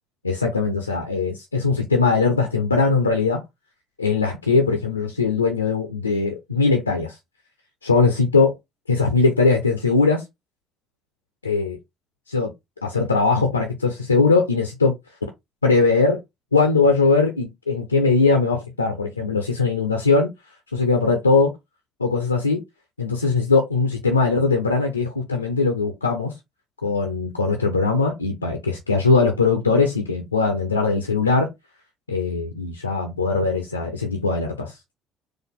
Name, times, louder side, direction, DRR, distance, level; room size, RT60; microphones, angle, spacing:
voice 1, 0.2-3.4 4.0-7.2 7.8-8.5 8.9-10.2 11.4-11.8 12.3-12.5 12.8-14.9 15.6-16.2 16.5-20.3 20.7-21.5 22.0-22.6 23.0-26.3 26.8-31.5 32.1-34.7, left 4 dB, 85° left, 0.7 m, -20 dB
4.2 x 2.6 x 4.4 m
figure-of-eight pair, 55°, 0 cm